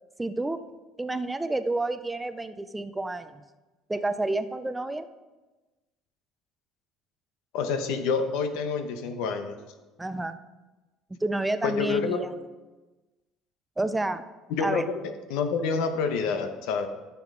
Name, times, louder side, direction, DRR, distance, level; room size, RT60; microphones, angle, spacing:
voice 1, 0.2-0.6 1.0-3.4 3.9-5.1 10.0-10.4 11.2-12.3 13.8-14.2 14.6-14.8, right 2 dB, 10° right, 10 dB, 0.4 m, -29 dB
voice 2, 7.5-9.6 11.6-12.2 14.5-16.9, left 5 dB, 85° left, 8 dB, 0.9 m, -28 dB
12.5 x 6.1 x 3.7 m, 1.2 s
cardioid pair, 135°, 0 cm